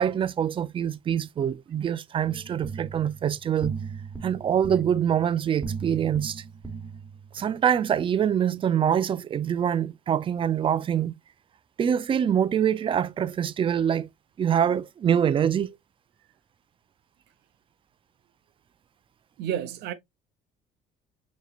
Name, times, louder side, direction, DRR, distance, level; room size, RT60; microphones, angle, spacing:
voice 1, 0.0-3.8 4.2-6.4 7.3-11.1 11.8-14.1 14.4-15.8, right 9 dB, 30° right, 0.4 m, -25 dB
sound 1, 2.2-7.5, right 5 dB, 5° right, 1.0 m, -38 dB
voice 2, 19.4-19.9, right 10 dB, 80° right, 0.8 m, -30 dB
5.3 x 2.9 x 2.4 m
cardioid pair, 110°, 17 cm